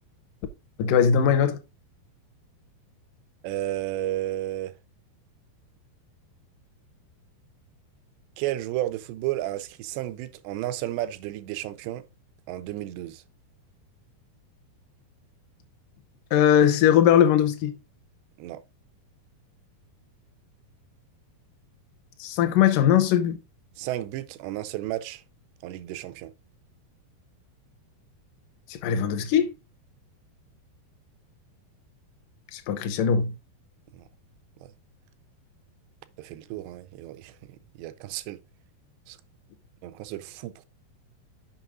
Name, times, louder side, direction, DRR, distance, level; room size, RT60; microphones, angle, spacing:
voice 1, 0.8-1.6 16.3-17.7 22.2-23.4 28.7-29.5 32.5-33.3, left 9 dB, 75° left, 2.1 m, -20 dB
voice 2, 3.4-4.7 8.4-12.0 12.5-13.2 18.4-18.6 23.8-25.2 25.6-26.3 33.9-34.0 34.6-34.7 36.2-38.4 39.1-39.2 39.8-40.6, right 14 dB, 90° right, 2.8 m, -33 dB
7.3 x 5.4 x 3.7 m
omnidirectional pair, 4.8 m